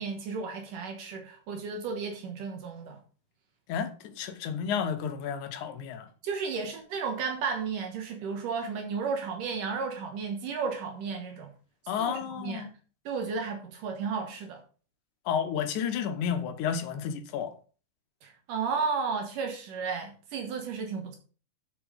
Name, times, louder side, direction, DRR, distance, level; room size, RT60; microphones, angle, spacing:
voice 1, 0.0-3.0 6.2-11.5 12.0-12.7 13.1-14.6 18.2-21.2, right 5 dB, 70° right, 2.8 m, -33 dB
voice 2, 3.7-6.1 11.9-12.7 15.3-17.5, left 7 dB, 70° left, 2.3 m, -31 dB
7.9 x 7.1 x 5.2 m
omnidirectional pair, 4.0 m